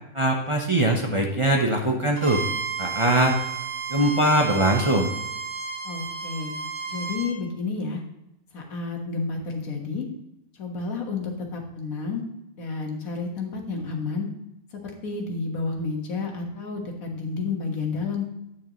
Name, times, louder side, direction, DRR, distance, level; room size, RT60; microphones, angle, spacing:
voice 1, 0.1-2.4 2.8-3.4 3.9-5.1, right 1 dB, 30° right, 0 dB, 0.5 m, -21 dB
Bowed string instrument, 2.2-7.3, right 5 dB, 85° right, 2.3 m, -32 dB
voice 2, 5.8-6.5 6.9-8.0 8.5-10.1 10.6-12.2 12.5-14.3 14.7-18.3, left 4 dB, 65° left, 1 dB, 1.8 m, -30 dB
9.6 x 6.5 x 3.0 m, 0.87 s
omnidirectional pair, 1.6 m